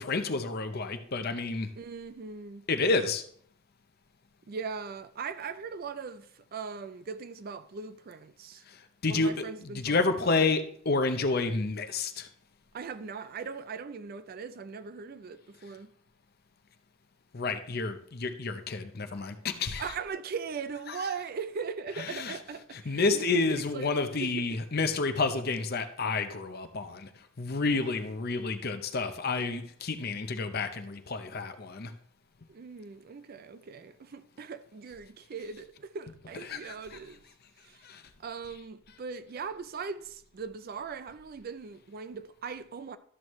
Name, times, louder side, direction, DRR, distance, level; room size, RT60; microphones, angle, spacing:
voice 1, 0.0-1.7 2.7-3.2 8.7-9.3 9.6-12.3 17.3-19.8 22.0-22.4 22.7-27.1 27.4-31.9 36.5-36.6 37.8-38.0, left 3 dB, 50° left, 0.7 m, -30 dB
voice 2, 1.8-2.7 4.5-8.6 9.1-10.4 12.7-15.9 19.8-24.5 27.7-27.8 32.5-37.2 37.6-37.9 38.2-43.0, right 5 dB, 45° right, 0.4 m, -39 dB
12.5 x 6.3 x 3.1 m
head